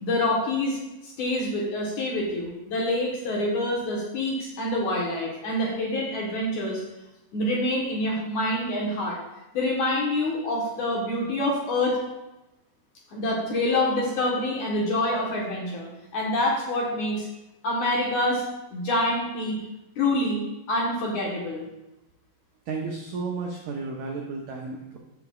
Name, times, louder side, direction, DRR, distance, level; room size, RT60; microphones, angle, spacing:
voice 1, 0.0-6.8 7.3-9.2 9.5-12.0 13.1-15.9 16.1-17.3 17.6-18.4 18.7-19.6 20.0-21.6, left 1 dB, 65° left, -3 dB, 2.1 m, -26 dB
voice 2, 22.6-25.0, right 4 dB, 85° right, 0 dB, 1.7 m, -33 dB
15.5 x 5.9 x 2.3 m, 0.97 s
omnidirectional pair, 4.6 m